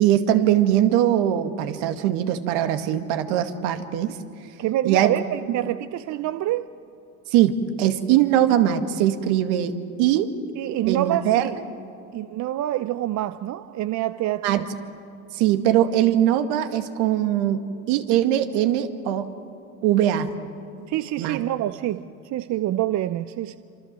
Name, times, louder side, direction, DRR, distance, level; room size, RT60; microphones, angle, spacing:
voice 1, 0.0-4.2 4.8-5.1 7.3-9.7 10.0-10.3 10.9-11.5 14.4-14.7 15.3-17.6 17.9-19.3 19.8-20.3 21.2-21.4, right 11 dB, 60° right, 2.2 m, -21 dB
voice 2, 4.6-6.7 10.6-11.6 12.1-14.7 20.9-23.6, right 13 dB, 40° right, 0.8 m, -26 dB
27.0 x 26.5 x 7.7 m
hypercardioid pair, 85°, 44 cm